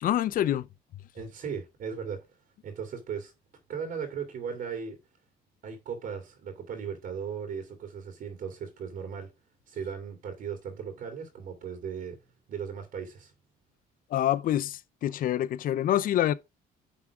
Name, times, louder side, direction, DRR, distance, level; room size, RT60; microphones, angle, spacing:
voice 1, 0.0-0.7 14.1-16.3, left 12 dB, 55° left, 0.6 m, -26 dB
voice 2, 1.1-2.2 2.6-3.3 3.7-5.0 5.6-9.3 9.7-12.2 12.5-13.3, right 6 dB, 60° right, 2.5 m, -37 dB
9.6 x 3.7 x 4.7 m
cardioid pair, 110°, 17 cm